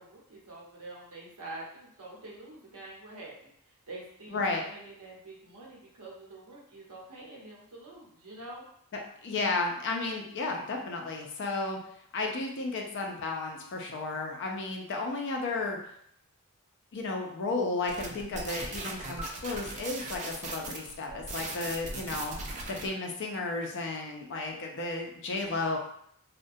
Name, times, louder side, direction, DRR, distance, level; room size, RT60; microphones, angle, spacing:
voice 1, 0.0-8.6, right 2 dB, 80° right, -3 dB, 0.8 m, -46 dB
voice 2, 4.3-4.6 9.2-11.8 12.1-15.8 16.9-22.4 22.7-25.8, left 3 dB, 55° left, 1 dB, 0.4 m, -33 dB
sound 1, 17.9-22.9, right 3 dB, 30° right, 0.3 m, -39 dB
2.3 x 2.1 x 2.6 m, 0.68 s
head